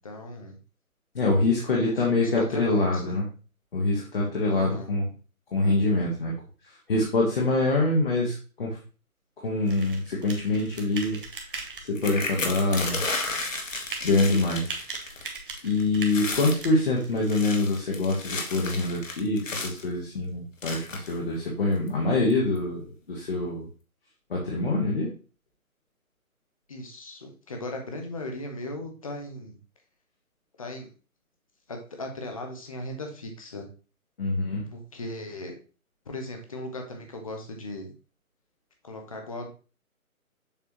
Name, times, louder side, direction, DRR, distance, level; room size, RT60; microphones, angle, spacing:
voice 1, 0.0-0.6 1.8-3.2 4.5-4.9 26.7-29.6 30.6-30.9 31.7-33.7 34.7-35.5 36.1-37.9 38.8-39.5, left 1 dB, 25° left, 3 dB, 0.9 m, -37 dB
voice 2, 1.1-3.2 3.7-5.0 5.5-6.3 6.9-8.8 9.4-11.2 11.9-13.0 14.0-14.7 15.6-22.8 23.1-23.7 24.3-25.1 34.2-34.6, left 2 dB, 40° left, -3 dB, 1.4 m, -25 dB
sound 1, 9.6-17.4, right 4 dB, 40° right, 1.1 m, -40 dB
sound 2, 12.0-15.3 15.6-15.8 16.1-16.6 17.2-19.8 20.6-21.2 21.9-22.0 22.3-22.6, left 3 dB, 60° left, 1.4 m, -33 dB
7.0 x 4.5 x 3.0 m, 0.35 s
figure-of-eight pair, 145°, 43 cm